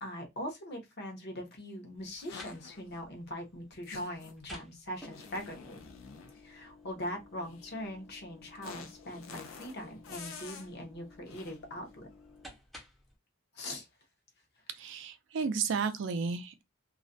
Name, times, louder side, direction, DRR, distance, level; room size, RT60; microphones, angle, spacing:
voice 1, 0.0-5.8 6.3-12.1 13.5-13.9, left 1 dB, 55° left, 0.8 m, -41 dB
sound 1, 2.0-13.1, left 1 dB, ahead, 0.5 m, -55 dB
sound 2, 2.2-3.0 3.8-4.4 4.9-6.4 7.4-7.7 8.6-10.7 11.3-11.6, left 5 dB, 85° left, 0.4 m, -48 dB
voice 2, 14.8-16.6, right 5 dB, 65° right, 0.4 m, -33 dB
2.4 x 2.1 x 2.5 m
head